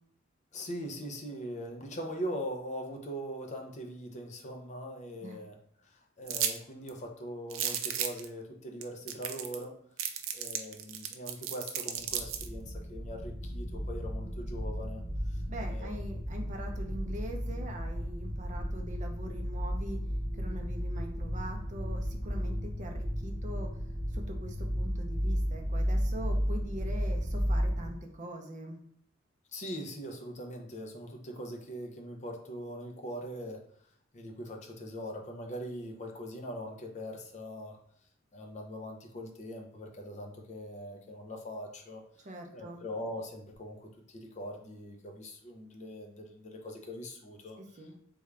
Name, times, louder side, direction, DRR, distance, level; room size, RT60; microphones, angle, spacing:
voice 1, 0.5-5.6 5.8-9.8 10.3-15.0 15.3-15.4 15.7-15.9 29.5-33.6 34.1-37.8 38.3-42.3 42.5-47.6, equal, 35° left, 2 dB, 0.5 m, -41 dB
sound 1, 6.3-6.6 6.9-7.0 7.5-8.2 8.8-8.9 9.1-9.6 10.0-12.5, right 9 dB, 85° right, 0.4 m, -33 dB
sound 2, 12.0-27.9, equal, 75° left, 0.9 m, -34 dB
voice 2, 15.5-20.0 20.3-23.8 24.1-28.8 42.2-42.8 47.6-48.0, equal, 40° right, 3 dB, 0.5 m, -43 dB
3.6 x 2.3 x 3.2 m, 0.69 s
head